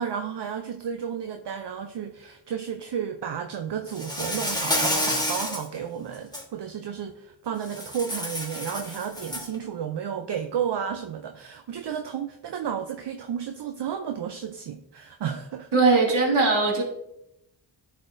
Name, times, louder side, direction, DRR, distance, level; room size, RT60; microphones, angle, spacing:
voice 1, 0.0-15.7, right 8 dB, 55° right, 0.6 m, -32 dB
Insect, 3.9-5.7 6.1-6.4 7.7-9.5, left 1 dB, 10° left, 1.4 m, -29 dB
voice 2, 15.7-16.8, right 3 dB, 80° right, 2.0 m, -20 dB
11.0 x 4.2 x 2.6 m
cardioid pair, 55°, 49 cm